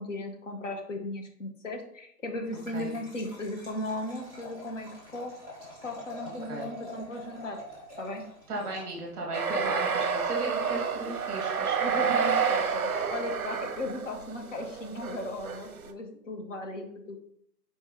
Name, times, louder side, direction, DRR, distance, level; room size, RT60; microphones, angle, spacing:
voice 1, 0.0-5.3 5.8-7.6 8.0-8.2 11.8-17.2, left 1 dB, 50° left, 3 dB, 0.9 m, -36 dB
Liquid, 2.4-9.3, equal, 20° left, 1.4 m, -46 dB
voice 2, 8.5-12.1, right 2 dB, 20° right, -2 dB, 1.2 m, -36 dB
sound 1, 9.3-15.9, right 6 dB, 60° right, 0.6 m, -29 dB
4.3 x 3.3 x 3.6 m, 0.69 s
hypercardioid pair, 170°, 49 cm